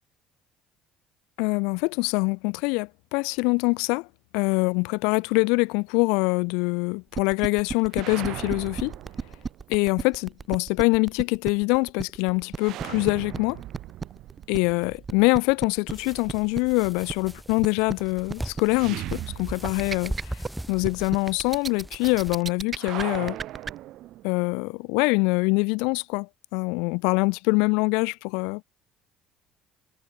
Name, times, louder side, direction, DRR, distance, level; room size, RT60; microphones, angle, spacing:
voice 1, 1.4-4.1 4.3-8.9 9.7-13.6 14.5-20.1 20.7-23.4 24.2-28.6, left 31 dB, 80° left, 0.8 m, -24 dB
sound 1, 7.1-23.7, right 5 dB, 30° right, 2.1 m, -33 dB
sound 2, 7.9-9.9 12.6-15.6 18.7-20.1 20.4-20.5 22.8-24.5, right 15 dB, 65° right, 4.9 m, -39 dB
sound 3, 15.9-22.4, right 1 dB, 5° right, 6.7 m, -39 dB
supercardioid pair, 80°, 0 cm